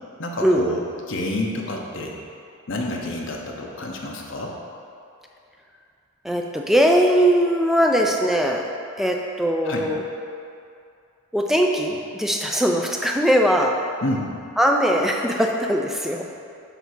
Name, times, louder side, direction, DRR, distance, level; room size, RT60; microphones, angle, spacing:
voice 1, 0.2-2.1 2.7-4.5 9.6-9.9 14.0-14.3, left 1 dB, 60° left, -1 dB, 0.9 m, -28 dB
voice 2, 6.2-8.7 9.0-10.0 11.3-13.8 14.6-16.3, equal, ahead, 1 dB, 0.4 m, -20 dB
8.0 x 2.8 x 6.0 m, 2.5 s
head